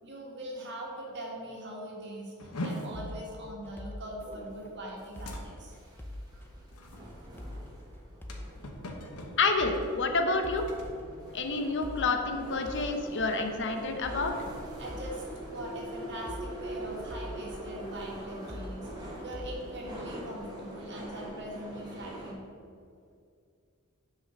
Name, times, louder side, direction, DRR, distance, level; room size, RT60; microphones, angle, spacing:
voice 1, 0.0-5.8 14.8-15.2 15.5-22.5, right 1 dB, 55° right, -3 dB, 1.8 m, -41 dB
sound 1, 2.4-12.0 12.3-12.7 13.1-13.3 13.9-15.8, left 1 dB, 85° left, 1.0 m, -44 dB
sound 2, 2.9-20.7, left 1 dB, 10° left, 0.5 m, -46 dB
sound 3, 4.2-22.3, right 1 dB, 20° right, 1.5 m, -44 dB
voice 2, 9.4-10.7 11.3-14.3, left 3 dB, 55° left, 5 dB, 0.8 m, -28 dB
6.4 x 5.0 x 6.3 m, 2.3 s
head